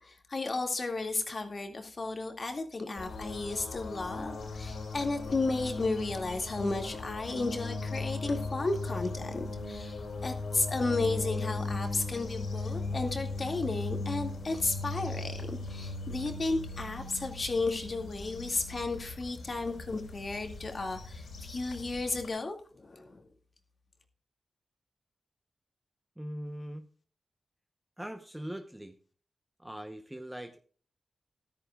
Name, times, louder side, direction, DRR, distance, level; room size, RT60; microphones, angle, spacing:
voice 1, 0.0-23.2, left 3 dB, 40° left, 4 dB, 2.2 m, -33 dB
sound 1, 3.0-22.3, left 3 dB, 85° left, 4.5 m, -38 dB
voice 2, 26.2-26.9 28.0-29.0 29.6-30.6, equal, 5° right, 7 dB, 0.9 m, -41 dB
14.0 x 14.0 x 2.4 m, 0.42 s
wide cardioid pair, 150°, 0 cm